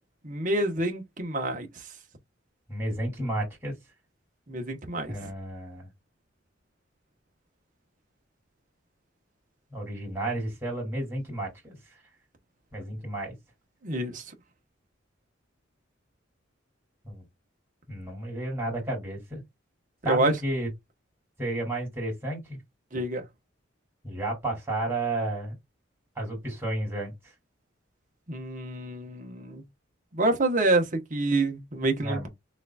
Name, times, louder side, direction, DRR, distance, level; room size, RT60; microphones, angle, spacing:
voice 1, 0.2-1.7 4.5-5.3 13.8-14.2 20.0-20.3 22.9-23.2 28.3-29.6 30.1-32.3, right 2 dB, 40° right, 1.1 m, -27 dB
voice 2, 2.7-3.7 5.1-5.9 9.7-11.7 12.7-13.3 17.0-17.2 17.9-19.4 20.0-20.7 21.4-22.6 24.0-25.5 26.2-27.1 32.0-32.3, right 1 dB, 10° right, 2.7 m, -32 dB
6.4 x 2.6 x 2.3 m
head